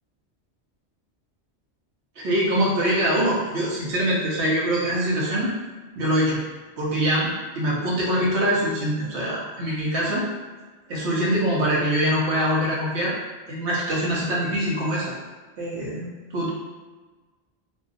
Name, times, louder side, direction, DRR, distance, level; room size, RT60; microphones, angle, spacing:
voice 1, 2.2-5.5 5.9-6.4 6.8-10.2 10.9-13.1 13.5-15.1 15.6-16.5, equal, 75° right, -5 dB, 1.0 m, -24 dB
2.6 x 2.1 x 3.6 m, 1.3 s
omnidirectional pair, 1.2 m